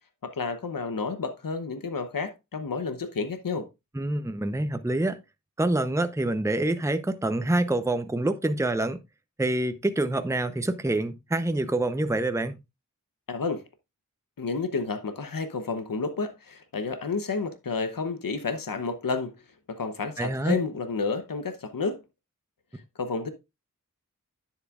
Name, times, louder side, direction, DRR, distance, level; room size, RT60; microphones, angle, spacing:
voice 1, 0.2-3.7 13.3-13.6 14.4-19.3 19.7-22.0 23.0-23.3, left 4 dB, 85° left, 0.9 m, -30 dB
voice 2, 3.9-5.2 5.6-9.0 9.4-12.6 20.2-20.6, right 1 dB, 10° right, 0.7 m, -26 dB
10.5 x 7.4 x 2.4 m
wide cardioid pair, 45°, 33 cm